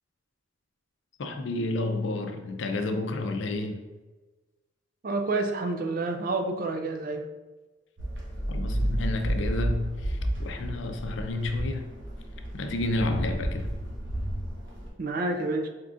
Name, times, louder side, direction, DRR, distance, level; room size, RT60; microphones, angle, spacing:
voice 1, 1.2-3.8 8.5-11.9 12.5-13.7, left 2 dB, 70° left, 0.5 m, -30 dB
voice 2, 5.0-7.2 15.0-15.7, right 2 dB, 45° right, 0.4 m, -29 dB
sound 1, 8.0-14.9, right 1 dB, 65° right, 1.0 m, -31 dB
4.3 x 3.7 x 2.5 m
head